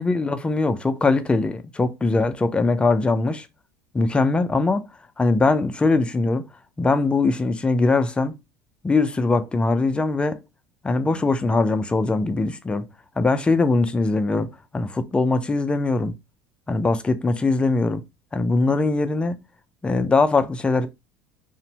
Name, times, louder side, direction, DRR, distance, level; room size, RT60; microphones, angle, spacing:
voice 1, 0.0-3.5 3.9-4.9 5.2-6.5 6.8-8.3 8.8-10.4 10.8-12.9 13.2-16.1 16.7-18.0 18.3-19.4 19.8-20.9, left 3 dB, 15° left, 0.4 m, -21 dB
2.6 x 2.1 x 2.7 m
supercardioid pair, 100°, 7 cm